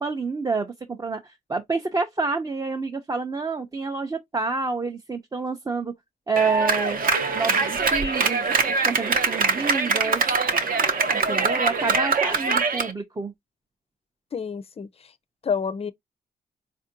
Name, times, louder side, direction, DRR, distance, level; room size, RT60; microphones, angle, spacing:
voice 1, 0.0-5.9 6.3-7.0 7.3-10.2 11.3-13.3, right 4 dB, 20° right, 0.4 m, -28 dB
Clapping, 6.4-12.9, right 4 dB, 55° right, 0.7 m, -23 dB
voice 2, 14.3-15.1 15.4-15.9, left 6 dB, 35° left, 0.4 m, -29 dB
4.3 x 2.4 x 2.7 m
wide cardioid pair, 110°, 17 cm